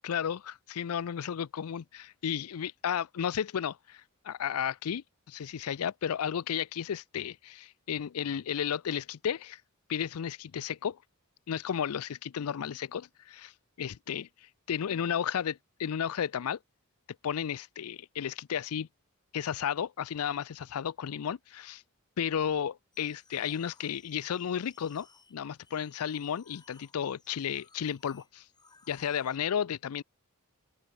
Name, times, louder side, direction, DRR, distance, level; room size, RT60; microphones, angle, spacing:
voice 1, 0.0-9.6 9.9-11.0 11.5-13.5 13.8-14.3 14.7-15.5 15.8-16.6 17.2-18.9 19.3-21.8 22.2-28.4 28.9-30.0, left 8 dB, 85° left, 0.4 m, -33 dB
sound 1, 22.9-29.4, left 4 dB, 20° left, 5.5 m, -62 dB
open air
head